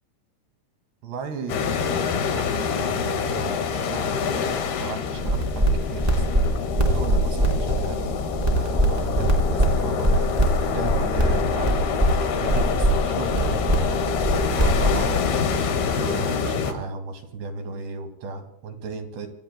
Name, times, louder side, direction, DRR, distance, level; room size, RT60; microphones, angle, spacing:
voice 1, 1.0-6.3 6.9-10.3 10.7-14.0 14.5-15.5 15.9-19.3, right 4 dB, 70° right, 5 dB, 4.1 m, -35 dB
sound 1, 1.5-16.7, left 6 dB, 65° left, 3.5 m, -26 dB
sound 2, 5.1-15.6, right 1 dB, 10° right, 2.6 m, -23 dB
26.0 x 25.0 x 2.2 m, 0.77 s
omnidirectional pair, 5.2 m